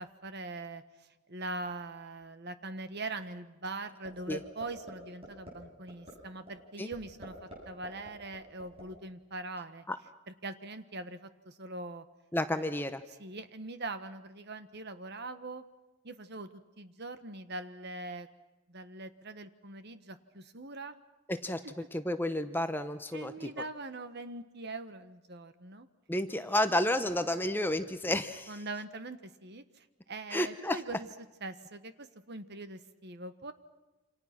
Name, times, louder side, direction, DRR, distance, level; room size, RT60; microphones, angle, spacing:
voice 1, 0.0-9.8 10.3-12.0 12.5-12.7 13.1-15.6 16.0-16.5 16.8-18.3 18.7-21.0 21.6-21.9 23.1-25.9 28.5-31.1 31.4-33.5, right 2 dB, 45° right, 11 dB, 1.3 m, -42 dB
sound 1, 4.1-4.4 4.6-4.9 5.2-5.5 5.9-6.1 6.5-6.6 6.9-7.6 7.8-8.8, equal, 25° right, 7.2 m, -46 dB
voice 2, 12.3-13.0 21.3-21.6 21.9-23.5 26.1-28.6 30.3-30.8, left 1 dB, 10° left, 9 dB, 0.8 m, -31 dB
28.0 x 27.0 x 6.0 m, 1.1 s
head